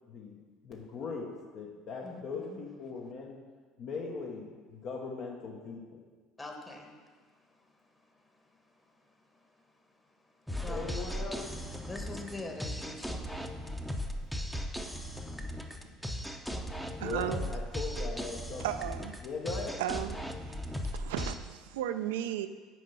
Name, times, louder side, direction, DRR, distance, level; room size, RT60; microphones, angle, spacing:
voice 1, 0.1-1.3 1.5-3.4 3.8-6.0 10.6-11.5 14.2-14.5 15.9-16.0 17.0-18.7 19.2-19.8, left 4 dB, 60° left, -1 dB, 0.9 m, -40 dB
voice 2, 6.4-10.9 11.9-13.4, left 2 dB, 20° left, 3 dB, 1.1 m, -46 dB
sound 1, 10.5-21.4, equal, ahead, 0.6 m, -37 dB
voice 3, 17.0-17.5 18.6-19.2 19.8-20.2 20.5-20.6 20.8-22.5, right 11 dB, 85° right, 10 dB, 0.4 m, -34 dB
6.2 x 4.5 x 5.5 m, 1.5 s
supercardioid pair, 85°, 0 cm